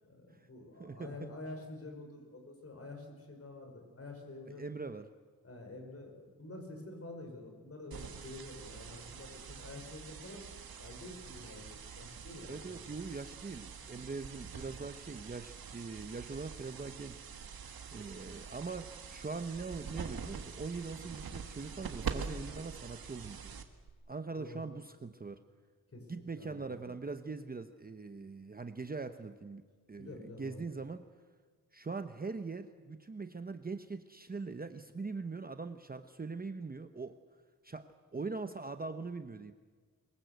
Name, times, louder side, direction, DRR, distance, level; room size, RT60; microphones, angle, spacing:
voice 1, 0.1-4.6 5.4-12.9 13.9-14.0 18.2-18.3 24.4-24.7 25.9-26.9 30.0-30.6, left 2 dB, 40° left, 3 dB, 5.5 m, -48 dB
voice 2, 0.8-1.3 4.6-5.1 12.4-17.2 17.9-23.5 24.1-25.4 26.1-29.6 29.9-31.0 31.7-37.2 37.6-39.5, right 4 dB, 25° right, 9 dB, 0.9 m, -42 dB
sound 1, 7.9-23.9, right 6 dB, 80° right, 1.8 m, -45 dB
23.0 x 21.5 x 8.0 m, 1.5 s
wide cardioid pair, 160°, 36 cm